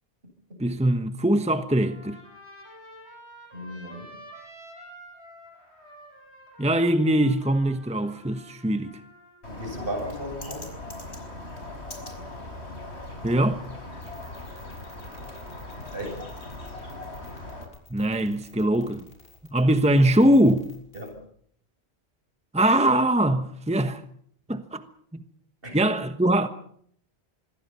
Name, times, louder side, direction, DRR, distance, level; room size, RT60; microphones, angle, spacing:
voice 1, 0.6-2.2 6.6-8.9 13.2-13.6 17.9-19.0 19.5-20.7 22.5-24.0 24.5-24.8 25.7-26.5, right 1 dB, 5° right, 1.1 m, -22 dB
Trumpet, 1.7-9.4, equal, 90° right, 7.9 m, -48 dB
voice 2, 3.5-4.1 9.4-10.7 15.9-16.2 20.9-21.2 25.6-25.8, equal, 55° right, 8.0 m, -35 dB
Bird, 9.4-17.7, left 2 dB, 85° left, 5.7 m, -39 dB
sound 1, 14.0-21.1, left 2 dB, 65° left, 7.2 m, -53 dB
26.5 x 21.5 x 5.7 m
omnidirectional pair, 1.1 m